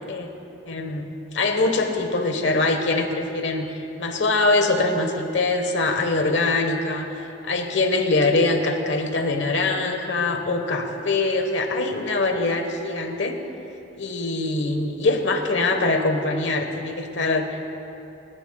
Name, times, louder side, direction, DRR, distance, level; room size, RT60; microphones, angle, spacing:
voice 1, 0.7-13.4 14.0-17.6, left 2 dB, 70° left, 5 dB, 1.2 m, -23 dB
30.0 x 10.0 x 2.3 m, 3.0 s
head